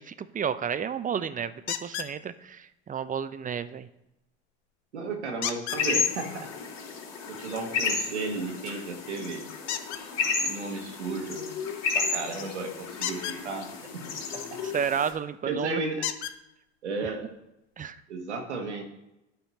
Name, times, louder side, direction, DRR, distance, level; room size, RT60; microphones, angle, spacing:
voice 1, 0.0-3.9 14.6-15.8 17.0-17.1 17.8-18.0, right 7 dB, 25° right, 13 dB, 0.6 m, -32 dB
sound 1, 1.7-2.1 5.4-5.8 9.7-10.0 12.9-13.4 15.1-15.2 16.0-16.4 17.4-17.5 17.9-18.0, left 11 dB, 75° left, 0.8 m, -32 dB
voice 2, 4.9-6.5 7.3-9.5 10.4-11.5 11.9-13.7 13.9-14.1 15.5-16.1 16.8-17.3 18.1-18.8, right 3 dB, 90° right, 3 dB, 1.7 m, -34 dB
sound 2, 5.7-15.1, left 5 dB, 50° left, 3.1 m, -32 dB
11.5 x 4.4 x 4.2 m, 0.89 s
hypercardioid pair, 75°, 33 cm